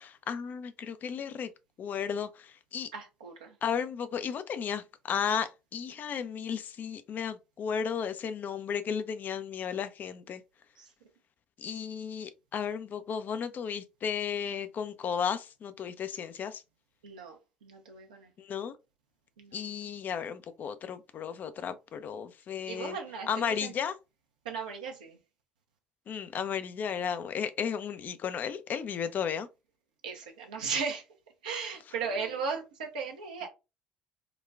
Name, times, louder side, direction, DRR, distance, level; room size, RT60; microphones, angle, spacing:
voice 1, 0.0-1.5 1.8-2.9 3.6-10.4 11.6-16.6 18.4-18.8 19.5-23.0 23.3-23.9 26.1-29.5, left 7 dB, 45° left, 0.4 m, -34 dB
voice 2, 2.9-3.6 10.8-10.9 11.6-11.8 17.0-18.3 19.4-19.8 22.7-23.7 24.4-25.2 30.0-31.1 31.4-33.5, right 5 dB, 80° right, 0.7 m, -37 dB
3.9 x 2.2 x 2.3 m
figure-of-eight pair, 50°, 4 cm